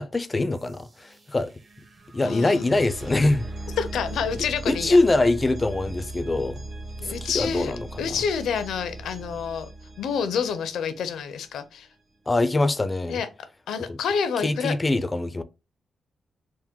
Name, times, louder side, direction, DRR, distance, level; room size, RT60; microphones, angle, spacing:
voice 1, 0.0-1.5 2.1-3.4 4.7-6.6 7.2-8.2 12.3-13.2 13.9-14.0 14.4-15.4, left 2 dB, 25° left, 0.4 m, -23 dB
sound 1, 0.5-11.4, right 2 dB, 40° right, 1.1 m, -38 dB
voice 2, 2.2-2.7 3.8-5.0 7.0-7.7 8.0-9.7 10.0-11.9 13.1-13.3 13.7-14.7, left 6 dB, 85° left, 0.6 m, -28 dB
3.7 x 2.1 x 4.3 m
cardioid pair, 85°, 0 cm